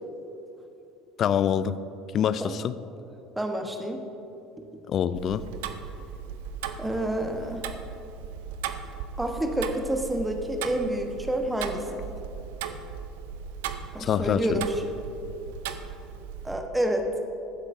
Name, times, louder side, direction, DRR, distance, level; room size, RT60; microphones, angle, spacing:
voice 1, 1.2-1.7 2.1-2.7 4.9-5.4 14.0-14.6, left 9 dB, 45° left, 15 dB, 0.4 m, -25 dB
voice 2, 3.4-4.0 6.8-7.7 9.2-12.0 13.9-14.8 16.4-17.1, right 1 dB, 10° right, 4 dB, 1.1 m, -28 dB
Tick-tock, 5.1-16.5, right 7 dB, 70° right, 0.5 m, -37 dB
14.5 x 8.1 x 2.6 m, 3.0 s
figure-of-eight pair, 65°, 0 cm